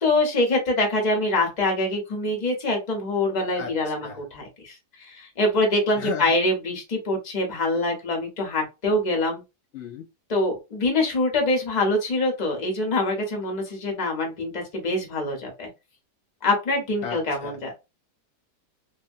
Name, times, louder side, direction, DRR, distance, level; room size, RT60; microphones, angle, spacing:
voice 1, 0.0-9.4 10.3-15.7 16.4-17.7, left 2 dB, 35° left, 1 dB, 0.7 m, -24 dB
voice 2, 6.0-6.4 9.7-10.1 17.0-17.6, left 7 dB, 90° left, 1 dB, 0.6 m, -34 dB
2.8 x 2.3 x 2.5 m, 0.25 s
omnidirectional pair, 1.8 m